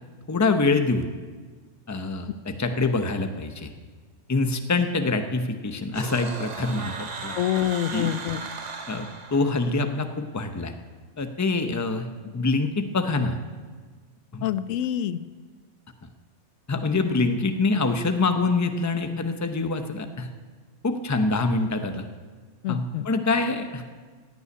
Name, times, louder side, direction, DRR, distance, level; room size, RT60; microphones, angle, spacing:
voice 1, 0.3-1.1 1.9-3.7 4.3-7.4 7.9-8.1 8.9-10.7 11.2-12.1 12.3-13.4 14.3-14.5 16.7-20.3 20.8-22.1 22.7-23.8, left 3 dB, 20° left, 7 dB, 0.6 m, -25 dB
sound 1, 5.9-9.9, right 4 dB, 40° right, 0.8 m, -37 dB
voice 2, 7.4-8.4 14.4-15.2 22.6-23.1, left 11 dB, 90° left, 14 dB, 0.9 m, -26 dB
16.0 x 5.6 x 9.6 m, 1.5 s
omnidirectional pair, 1.3 m